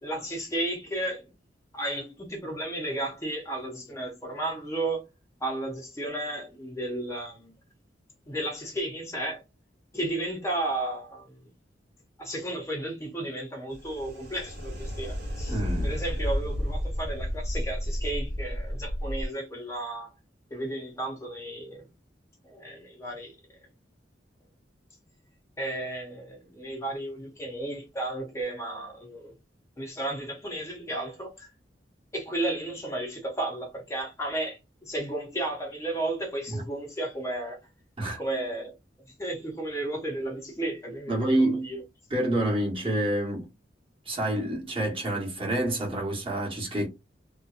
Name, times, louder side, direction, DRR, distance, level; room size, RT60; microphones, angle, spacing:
voice 1, 0.0-1.3 1.7-5.0 5.4-7.5 8.3-9.4 9.9-11.5 12.2-20.1 20.5-21.9 22.4-23.4 25.6-29.3 29.8-31.5 32.1-37.6 38.2-38.7 39.2-41.8, right 1 dB, 15° left, 0.5 m, -33 dB
sound 1, 13.7-19.3, equal, 85° right, 1.0 m, -31 dB
voice 2, 15.5-15.9 36.5-36.6 38.0-38.2 41.1-41.7 42.1-43.5 44.1-46.9, right 1 dB, 30° right, 1.0 m, -27 dB
2.6 x 2.2 x 2.3 m
head